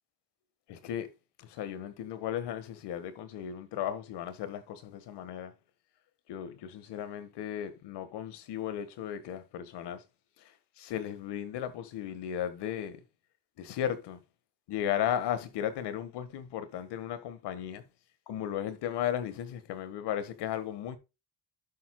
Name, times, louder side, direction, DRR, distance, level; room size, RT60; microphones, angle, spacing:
voice 1, 0.7-1.1 1.4-5.5 6.3-10.0 10.4-13.0 13.6-14.2 14.7-17.8 18.3-21.0, left 10 dB, 90° left, 1.5 m, -35 dB
11.0 x 7.9 x 2.2 m
cardioid pair, 100°, 40 cm